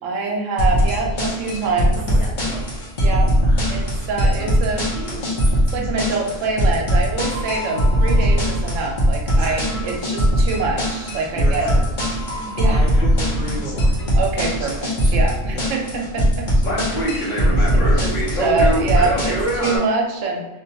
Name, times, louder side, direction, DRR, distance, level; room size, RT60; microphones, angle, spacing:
voice 1, 0.0-2.0 3.0-3.3 3.7-4.9 5.7-11.7 12.6-12.8 14.1-16.5 17.1-20.5, right 4 dB, 80° right, 0 dB, 0.9 m, -25 dB
sound 1, 0.6-19.8, equal, 45° left, 0.7 m, -19 dB
sound 2, 0.8-2.6 3.0-6.6 6.9-9.0 9.3-10.0 10.3-10.4 10.8-15.9 16.3-18.7, right 2 dB, 75° left, 1.1 m, -38 dB
voice 2, 9.3-10.2 11.3-11.8 12.5-13.9 15.4-15.7, equal, 5° right, -9 dB, 0.7 m, -33 dB
2.4 x 2.2 x 2.7 m, 1.0 s
omnidirectional pair, 1.3 m